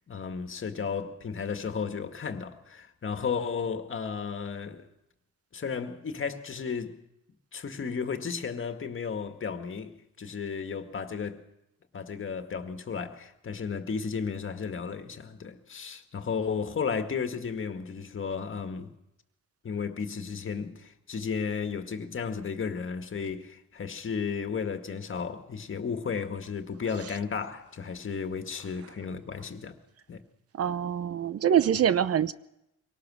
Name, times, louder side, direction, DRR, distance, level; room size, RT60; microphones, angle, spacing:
voice 1, 0.1-4.9 5.5-7.0 7.5-11.4 11.9-18.9 19.6-29.8 30.1-30.2, left 6 dB, 40° left, 2.0 m, -34 dB
voice 2, 30.6-32.3, right 9 dB, 50° right, 0.7 m, -24 dB
23.5 x 18.0 x 6.3 m
cardioid pair, 90°, 30 cm